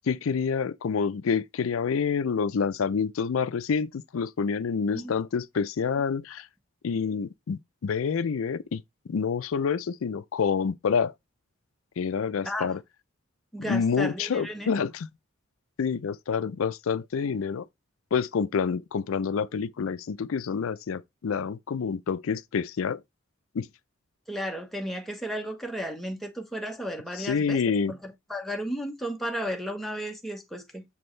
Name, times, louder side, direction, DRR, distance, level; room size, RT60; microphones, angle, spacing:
voice 1, 0.1-6.5 6.8-8.8 9.1-11.1 12.0-12.8 13.6-15.1 15.8-17.7 18.1-23.0 23.5-23.7 27.1-27.9, left 6 dB, 85° left, 0.4 m, -28 dB
voice 2, 13.5-14.8 24.3-27.6 27.9-30.8, equal, ahead, 1.0 m, -34 dB
7.3 x 4.3 x 3.2 m
head